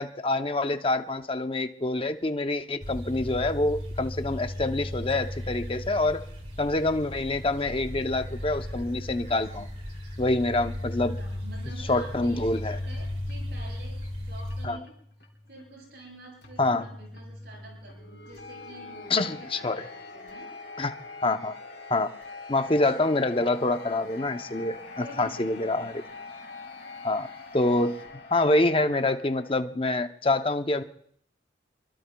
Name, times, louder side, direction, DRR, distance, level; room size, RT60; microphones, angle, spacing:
voice 1, 0.0-6.2 6.6-9.7 10.2-11.2 11.9-12.8 14.6-14.8 16.6-16.9 19.1-19.9 20.8-20.9 21.2-21.6 21.9-22.1 22.5-26.0 27.0-27.3 27.5-28.0 28.3-30.8, left 2 dB, 30° left, 8 dB, 0.7 m, -26 dB
sound 1, 2.8-14.7, left 1 dB, 35° right, 2.7 m, -36 dB
voice 2, 11.2-14.9 15.5-20.5 22.8-22.9 25.0-25.9, right 1 dB, 60° right, -1 dB, 7.7 m, -48 dB
sound 2, 11.6-29.6, left 3 dB, 75° left, 4.1 m, -45 dB
26.0 x 24.0 x 2.3 m, 0.67 s
head